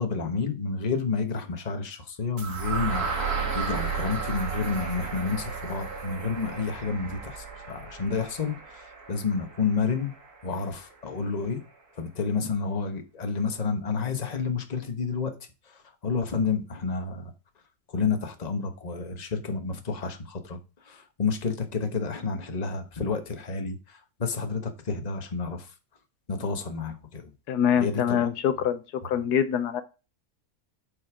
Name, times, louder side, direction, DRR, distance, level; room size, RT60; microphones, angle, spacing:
voice 1, 0.0-3.1 3.5-8.6 9.1-10.1 10.4-11.6 12.0-15.3 16.0-17.3 17.9-20.6 20.9-23.8 24.2-25.7 26.3-27.3 27.8-28.3, left 4 dB, 30° left, 1.2 m, -30 dB
sound 1, 2.4-10.3, right 5 dB, 70° right, 2.3 m, -33 dB
voice 2, 27.5-29.8, left 8 dB, 80° left, 1.3 m, -25 dB
7.8 x 5.3 x 4.9 m
omnidirectional pair, 1.7 m